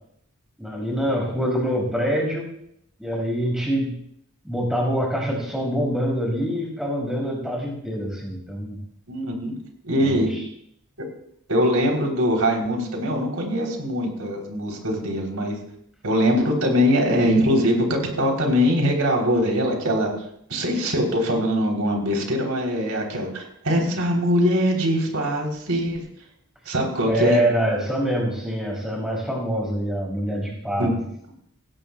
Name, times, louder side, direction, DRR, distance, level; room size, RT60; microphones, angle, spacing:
voice 1, 0.6-2.5 3.0-4.0 4.4-8.8 10.0-10.4 27.0-30.9, equal, 5° right, -2 dB, 5.4 m, -25 dB
voice 2, 9.1-9.5 9.8-10.3 11.5-15.6 16.0-20.1 20.5-26.0 26.7-27.4 30.8-30.9, equal, 85° right, 1 dB, 3.4 m, -22 dB
17.0 x 16.5 x 2.3 m, 0.71 s
head